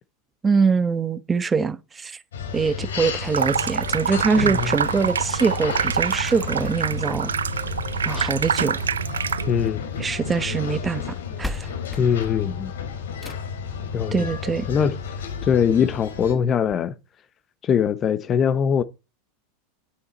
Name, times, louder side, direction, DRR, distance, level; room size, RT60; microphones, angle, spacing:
voice 1, 0.4-2.2 2.5-7.3 8.0-8.8 10.0-11.7 14.1-14.7, right 5 dB, 20° right, 1.1 m, -23 dB
sound 1, 2.3-16.3, left 6 dB, 80° left, 3.8 m, -32 dB
Water tap faucet / Sink (filling or washing), 3.2-9.7, right 7 dB, 90° right, 0.4 m, -26 dB
voice 2, 4.4-4.7 9.5-9.8 12.0-12.7 13.9-14.2 14.7-15.0 15.4-16.9 17.6-18.8, left 7 dB, 35° left, 1.2 m, -21 dB
sound 2, 9.0-10.3 11.1-11.2 11.4-13.7 15.0-15.1 15.6-15.7 16.0-16.1 16.7-16.8, left 1 dB, ahead, 1.3 m, -38 dB
9.9 x 9.5 x 4.1 m
hypercardioid pair, 95°, 0 cm